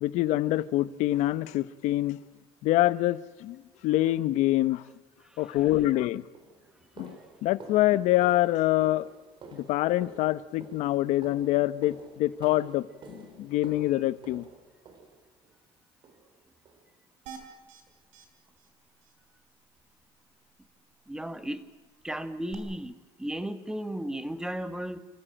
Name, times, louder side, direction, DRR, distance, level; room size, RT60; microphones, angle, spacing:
voice 1, 0.0-2.2 2.6-4.8 5.4-6.2 7.0-9.1 9.5-14.4, left 15 dB, 75° left, 16 dB, 1.0 m, -26 dB
voice 2, 5.2-5.6 21.1-21.6 22.0-25.0, right 1 dB, 5° right, 11 dB, 1.5 m, -35 dB
sound 1, 5.6-5.8 6.3-15.6 16.0-16.4 16.6-16.9 17.3-17.4 17.9-18.0 18.5-18.6, right 4 dB, 40° right, 4.0 m, -50 dB
sound 2, 17.3-17.8 18.1-18.3 18.6-18.7 19.0-19.1 22.5-22.6, right 8 dB, 85° right, 4.5 m, -45 dB
28.0 x 15.5 x 9.0 m, 1.3 s
cardioid pair, 135°, 12 cm